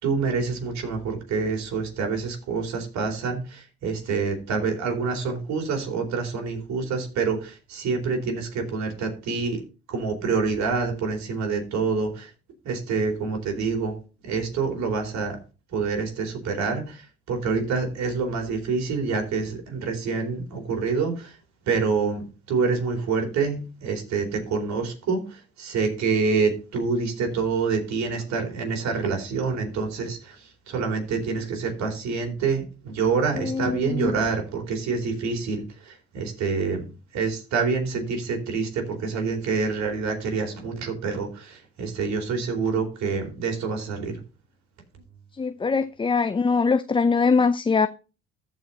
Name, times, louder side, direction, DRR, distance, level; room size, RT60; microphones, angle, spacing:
voice 1, 0.0-9.6 9.9-12.3 12.6-13.9 14.2-15.4 15.7-17.0 17.3-21.3 21.7-25.2 25.6-30.4 30.7-36.8 37.1-44.2, right 4 dB, 60° right, 4.1 m, -27 dB
voice 2, 33.3-34.1 45.3-47.9, left 4 dB, 15° left, 0.5 m, -22 dB
14.0 x 5.1 x 4.0 m
hypercardioid pair, 60°, 31 cm